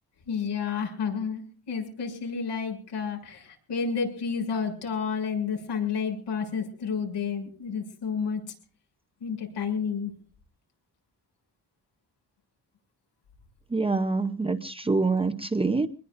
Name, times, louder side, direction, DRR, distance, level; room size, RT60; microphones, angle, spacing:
voice 1, 0.3-1.4 1.7-8.4 9.2-10.1, left 6 dB, 80° left, 3 dB, 7.2 m, -30 dB
voice 2, 13.7-15.9, right 3 dB, 15° right, 6 dB, 0.7 m, -25 dB
25.5 x 21.0 x 2.6 m, 0.40 s
wide cardioid pair, 175°, 41 cm